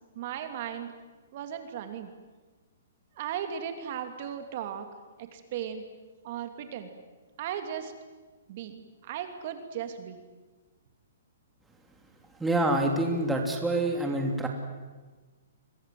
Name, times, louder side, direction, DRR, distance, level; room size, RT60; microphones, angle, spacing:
voice 1, 0.1-0.9 1.3-2.1 3.2-4.9 5.2-5.8 6.2-6.9 7.4-7.9 8.5-10.2, right 9 dB, 45° right, 7 dB, 2.8 m, -36 dB
voice 2, 12.4-14.5, right 1 dB, 5° right, 2 dB, 3.1 m, -26 dB
29.0 x 23.5 x 7.8 m, 1.3 s
hypercardioid pair, 155°, 0 cm